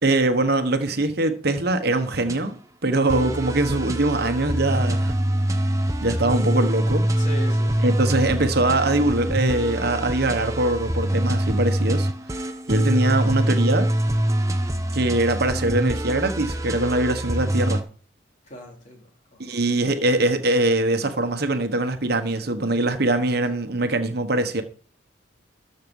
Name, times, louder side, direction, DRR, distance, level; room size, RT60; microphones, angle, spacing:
voice 1, 0.0-2.6 2.8-5.2 6.0-7.0 7.8-13.9 14.9-17.8 19.4-24.6, right 2 dB, 55° right, 1.2 m, -22 dB
sound 1, 1.9-2.4 3.1-17.8, right 1 dB, 15° right, 0.9 m, -24 dB
voice 2, 7.2-8.0 18.4-19.6, right 1 dB, 40° left, 3.5 m, -40 dB
13.5 x 6.6 x 5.4 m
head